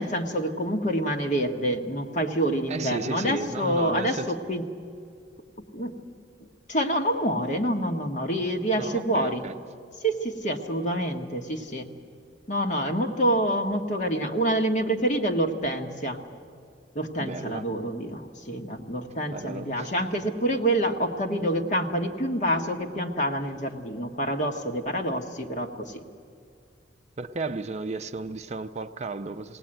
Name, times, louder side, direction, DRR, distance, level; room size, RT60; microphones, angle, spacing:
voice 1, 0.0-4.6 5.7-6.0 6.7-9.5 10.0-11.9 12.5-16.2 16.9-26.0, right 1 dB, 40° left, 1.6 m, -27 dB
voice 2, 2.7-4.3 8.7-9.5 17.2-17.7 19.3-19.9 27.2-29.6, right 3 dB, 40° right, 0.5 m, -34 dB
20.0 x 18.5 x 8.9 m
head